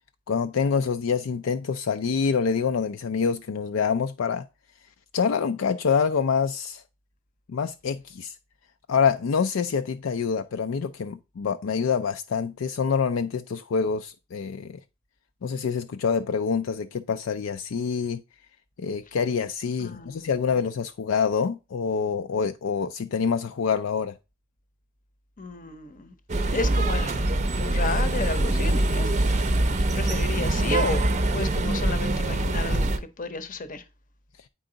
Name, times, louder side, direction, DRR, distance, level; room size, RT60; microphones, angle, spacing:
voice 1, 0.3-4.4 5.1-6.8 7.5-8.3 8.9-14.8 15.4-18.2 18.8-24.1, left 6 dB, 70° left, 0.4 m, -26 dB
voice 2, 19.8-20.3 25.4-27.1 27.6-29.4 29.9-31.0 31.3-32.9 33.2-33.8, left 3 dB, 40° left, 0.8 m, -32 dB
sound 1, 26.3-33.0, right 2 dB, 35° right, 0.6 m, -24 dB
8.7 x 4.6 x 3.9 m
head